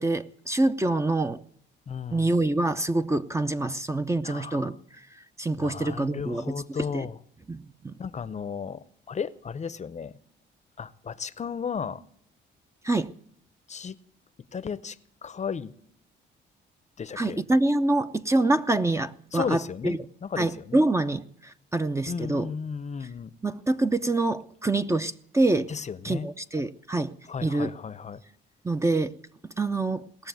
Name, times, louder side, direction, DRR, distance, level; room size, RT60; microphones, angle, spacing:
voice 1, 0.0-1.4 2.1-4.8 5.4-6.5 6.9-7.1 7.5-7.9 12.8-13.1 17.2-20.0 20.4-22.5 23.4-25.7 26.0-27.1 27.4-27.7 28.6-29.1 29.6-30.1, right 2 dB, 15° right, 0.6 m, -26 dB
voice 2, 1.9-2.3 4.2-4.7 5.5-7.2 8.0-10.2 10.8-12.0 13.7-14.0 14.5-15.0 15.2-15.7 17.0-17.4 19.3-20.8 22.1-23.3 25.7-26.3 27.3-28.2, left 6 dB, 35° left, 0.7 m, -34 dB
18.5 x 6.8 x 9.2 m
cardioid pair, 90°, 20 cm